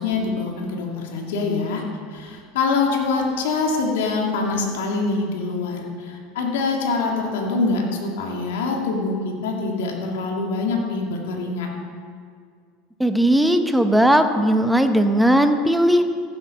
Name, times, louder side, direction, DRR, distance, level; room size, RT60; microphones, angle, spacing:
voice 1, 0.0-1.8 2.1-11.7, left 3 dB, 85° left, 0 dB, 2.1 m, -24 dB
voice 2, 13.0-16.0, right 1 dB, 5° right, 7 dB, 0.9 m, -17 dB
15.0 x 7.9 x 5.7 m, 2.1 s
supercardioid pair, 125°, 0 cm